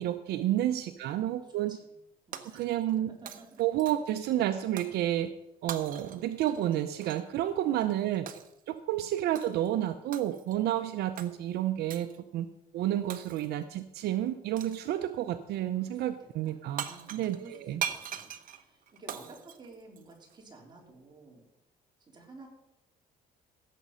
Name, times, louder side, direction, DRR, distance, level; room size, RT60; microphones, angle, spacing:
voice 1, 0.0-1.8 2.5-3.1 3.6-5.3 5.6-8.3 8.7-12.5 12.7-16.8 17.1-17.8, right 12 dB, 75° right, 10 dB, 0.7 m, -30 dB
voice 2, 1.4-1.9 2.3-2.7 3.2-3.5 7.7-8.1 9.0-9.1 14.8-15.1 15.8-16.6 16.9-21.4 22.1-22.5, right 3 dB, 25° right, -1 dB, 3.8 m, -53 dB
Shatter, 2.3-3.0 3.3-4.2 4.8-5.0 5.7-7.3 8.3-8.6 9.3-9.7 10.1-10.6 11.2-11.3 11.9-12.2 13.1-13.6 14.6-14.9 16.5-16.6 16.8-20.4, right 9 dB, 55° right, 1.0 m, -41 dB
16.0 x 7.4 x 5.6 m, 0.87 s
cardioid pair, 110°, 17 cm